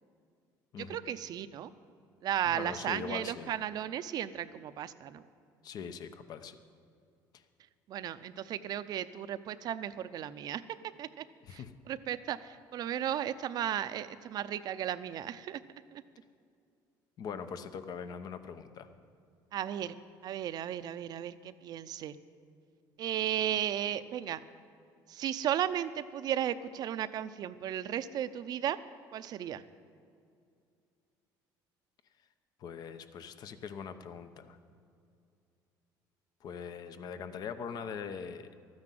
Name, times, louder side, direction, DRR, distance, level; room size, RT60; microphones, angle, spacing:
voice 1, 0.9-1.7 2.2-5.2 7.9-10.6 11.0-11.2 11.5-11.6 11.9-15.6 15.9-16.0 19.5-19.9 20.2-22.2 23.0-24.4 25.1-28.8 29.1-29.6, right 10 dB, 60° right, 13 dB, 0.6 m, -35 dB
voice 2, 2.4-3.5 5.6-6.6 7.3-7.4 11.4-11.7 17.2-18.9 32.6-34.6 36.4-38.5, left 6 dB, 55° left, 10 dB, 0.9 m, -42 dB
13.0 x 9.6 x 7.7 m, 2.4 s
cardioid pair, 105°, 8 cm